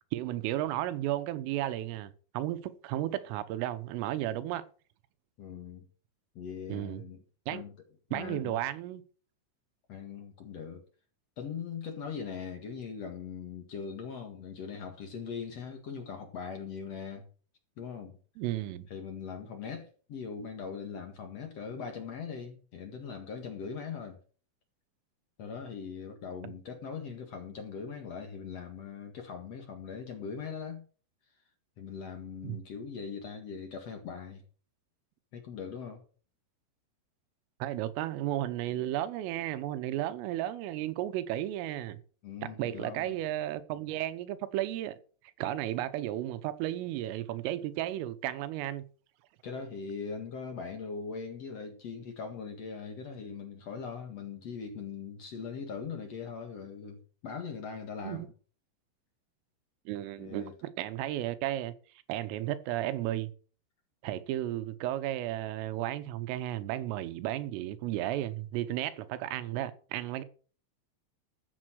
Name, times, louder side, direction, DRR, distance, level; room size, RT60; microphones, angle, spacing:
voice 1, 0.1-4.7 6.7-7.0 7.5-7.6 8.1-9.0 18.4-18.9 32.4-32.6 37.6-42.0 42.4-45.0 45.4-48.8 58.0-58.3 59.9-61.8 62.1-63.3 64.0-70.2, right 13 dB, 85° right, 3.6 m, -34 dB
voice 2, 5.4-5.9 6.3-7.2 7.5-7.8 8.1-8.6 9.9-10.8 11.4-17.2 17.8-18.2 18.9-24.2 25.4-30.8 31.8-34.4 35.3-36.0 42.2-43.2 49.4-58.3 60.2-60.5, left 6 dB, 65° left, 1.6 m, -40 dB
14.0 x 7.4 x 6.2 m
omnidirectional pair, 5.8 m